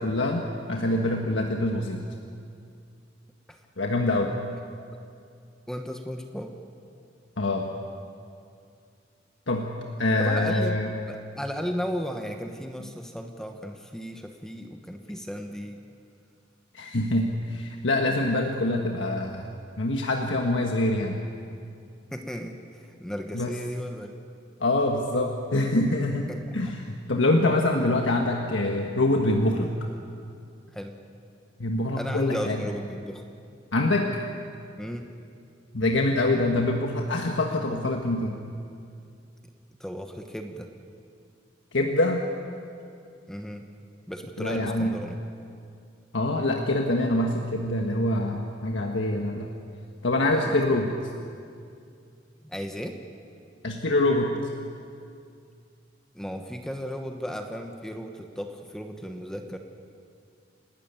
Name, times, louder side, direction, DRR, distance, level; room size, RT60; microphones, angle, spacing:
voice 1, 0.0-2.0 3.8-4.4 7.4-7.7 9.5-9.7 10.0-10.9 16.7-19.5 19.8-21.2 23.3-23.5 24.6-29.7 31.6-32.6 33.7-34.2 35.7-38.4 41.7-42.2 44.4-44.9 46.1-49.5 50.0-50.9 53.6-54.4, left 1 dB, 85° left, 2 dB, 1.4 m, -25 dB
voice 2, 5.7-6.5 10.2-10.8 11.1-15.8 22.1-24.1 26.3-26.4 30.7-31.0 32.0-33.2 34.8-35.1 39.8-40.7 43.3-43.7 44.1-45.2 50.3-50.8 52.4-53.0 56.1-59.6, equal, 5° left, 4 dB, 1.2 m, -35 dB
29.0 x 12.5 x 9.0 m, 2.4 s
head